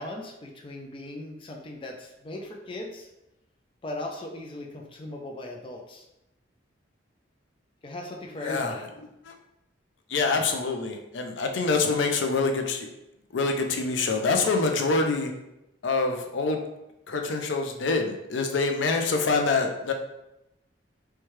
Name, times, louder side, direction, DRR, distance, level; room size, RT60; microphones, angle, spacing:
voice 1, 0.0-3.1 3.8-6.0 7.8-8.8, left 1 dB, 30° left, 1 dB, 0.4 m, -38 dB
voice 2, 8.4-8.9 9.2-9.3 10.1-12.9 13.3-15.3 15.8-16.6 17.1-19.9, left 3 dB, 80° left, 4 dB, 0.5 m, -25 dB
4.5 x 2.3 x 3.1 m, 0.90 s
head